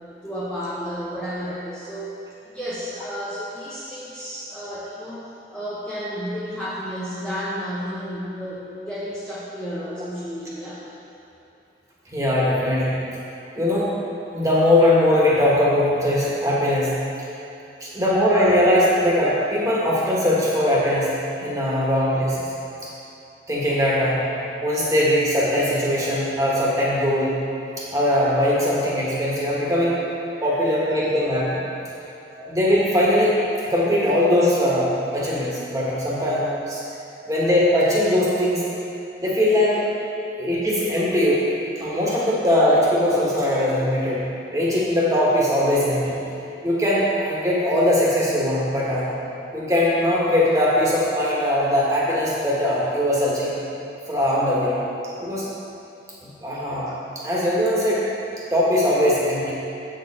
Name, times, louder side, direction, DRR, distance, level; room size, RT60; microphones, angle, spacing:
voice 1, 0.0-2.1 2.4-5.2 5.5-10.8 30.4-30.9 31.9-32.2 40.3-40.4 56.5-56.7, equal, 5° left, -10 dB, 0.8 m, -32 dB
voice 2, 12.1-13.0 13.5-13.9 14.3-17.0 17.8-22.5 22.8-22.9 23.5-24.3 24.6-27.4 27.8-30.0 30.4-31.6 32.3-36.8 37.3-38.6 39.2-39.8 40.4-41.4 41.8-44.2 44.5-46.2 46.6-49.1 49.5-53.5 54.1-54.8 55.2-55.5 56.2-56.9 57.2-58.0 58.5-59.5, left 1 dB, 20° right, -6 dB, 1.5 m, -20 dB
8.1 x 6.5 x 4.4 m, 2.8 s
head